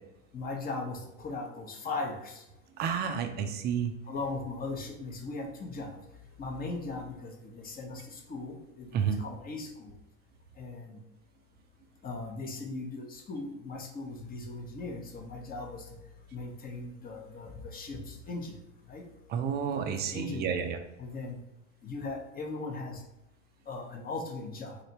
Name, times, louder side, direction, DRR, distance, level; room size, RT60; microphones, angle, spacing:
voice 1, 0.3-2.4 3.4-3.5 4.1-6.0 6.4-9.9 10.6-11.0 12.0-15.8 16.3-18.6 18.9-19.0 19.9-20.5 21.0-21.4 21.8-23.0 23.7-24.8, left 3 dB, 25° left, 3 dB, 0.8 m, -38 dB
voice 2, 2.8-3.9 8.9-9.2 19.3-20.8, right 7 dB, 30° right, 6 dB, 0.4 m, -30 dB
4.0 x 3.2 x 2.8 m, 0.86 s
hypercardioid pair, 100°, 37 cm